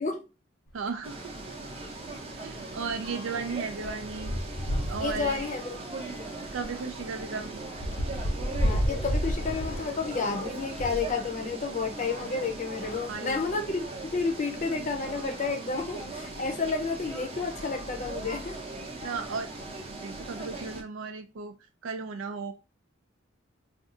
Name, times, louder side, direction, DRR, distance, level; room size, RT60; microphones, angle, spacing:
sound 1, 0.7-0.9 1.2-1.4 1.7-11.1 11.9-13.2 13.9-14.0 14.2-14.3 16.0-16.1 16.8-17.1 17.4-18.7, equal, 80° left, 1.0 m, -34 dB
voice 1, 0.7-1.5 2.4-4.4 4.9-5.4 6.4-7.7 13.1-13.5 19.0-19.5 20.0-21.5 21.8-22.5, right 4 dB, 80° right, 0.4 m, -35 dB
sound 2, 1.0-20.8, right 2 dB, 30° right, 0.7 m, -40 dB
voice 2, 5.0-5.7 6.2-6.3 8.6-18.6, left 4 dB, 40° left, 0.6 m, -31 dB
2.6 x 2.4 x 3.7 m
head